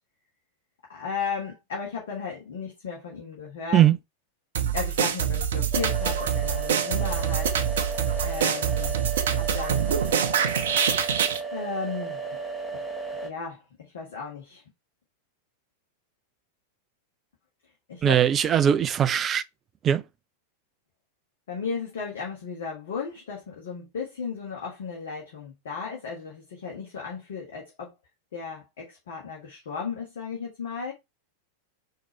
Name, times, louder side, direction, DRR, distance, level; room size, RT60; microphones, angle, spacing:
voice 1, 0.9-3.9 4.7-7.6 8.2-8.9 9.3-9.9 11.5-12.2 12.7-12.8 13.2-14.6 17.9-18.2 21.5-27.9 28.3-30.9, left 5 dB, 60° left, 1.4 m, -35 dB
sound 1, 4.5-11.4, right 8 dB, 60° right, 0.7 m, -25 dB
sound 2, 5.7-13.3, right 4 dB, 10° left, 0.9 m, -34 dB
voice 2, 18.0-19.4 19.8-20.0, right 10 dB, 25° right, 0.4 m, -20 dB
4.4 x 2.8 x 4.3 m
figure-of-eight pair, 90°, 0 cm